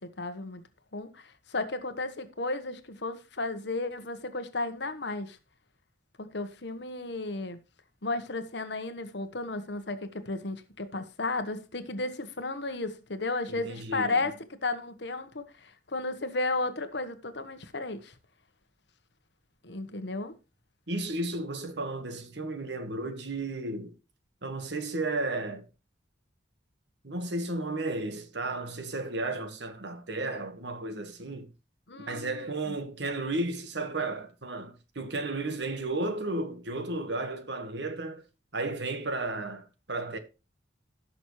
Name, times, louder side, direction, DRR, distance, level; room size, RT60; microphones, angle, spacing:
voice 1, 0.2-0.6 0.9-5.4 6.2-7.6 8.0-14.3 14.6-18.1 19.6-20.3 31.9-32.7, left 2 dB, 65° left, 1.3 m, -34 dB
voice 2, 13.5-14.2 20.9-24.0 24.4-25.6 27.0-31.5 32.0-38.2 38.5-40.2, right 2 dB, 65° right, 1.6 m, -33 dB
17.5 x 6.2 x 3.2 m
head